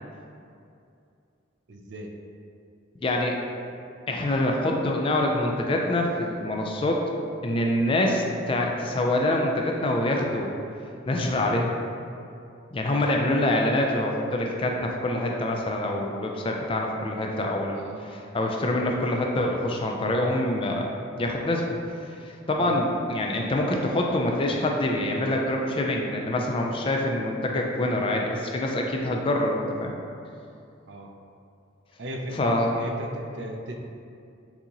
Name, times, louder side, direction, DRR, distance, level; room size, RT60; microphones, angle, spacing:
voice 1, 1.7-2.1 13.0-13.2 17.7-18.1 22.6-22.8 30.9-31.1 32.0-33.8, right 1 dB, 60° right, 2 dB, 0.5 m, -36 dB
voice 2, 3.0-3.4 4.1-7.0 7.4-10.5 11.1-11.7 12.7-20.8 21.2-21.6 22.5-30.0 32.3-32.7, left 1 dB, 25° left, 0 dB, 0.3 m, -25 dB
5.9 x 2.8 x 2.9 m, 2.5 s
head